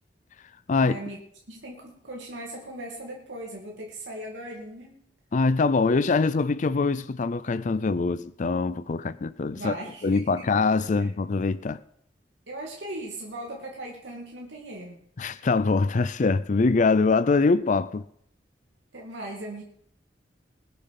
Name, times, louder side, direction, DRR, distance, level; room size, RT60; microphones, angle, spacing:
voice 1, 0.8-1.2 1.5-5.0 9.6-10.5 11.0-11.1 12.5-15.1 18.9-19.6, right 1 dB, 90° right, 2.2 m, -38 dB
voice 2, 5.3-9.7 10.0-11.8 15.2-18.0, left 4 dB, 45° left, 0.5 m, -23 dB
20.5 x 6.9 x 5.8 m
head